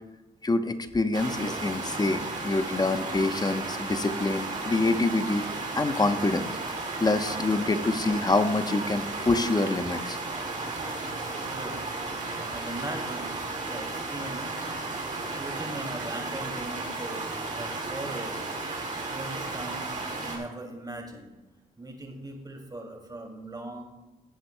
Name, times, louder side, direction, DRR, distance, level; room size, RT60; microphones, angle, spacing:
voice 1, 0.4-5.5 5.8-6.5 7.0-10.2, left 2 dB, 25° left, 9 dB, 0.9 m, -26 dB
sound 1, 1.1-20.4, right 3 dB, 50° right, 2.6 m, -34 dB
voice 2, 11.5-11.8 12.5-13.3 13.6-14.7 15.2-18.5 19.0-21.3 21.8-23.8, right 2 dB, 25° right, 1 dB, 2.5 m, -39 dB
17.0 x 7.9 x 2.2 m, 1.1 s
cardioid pair, 65°, 17 cm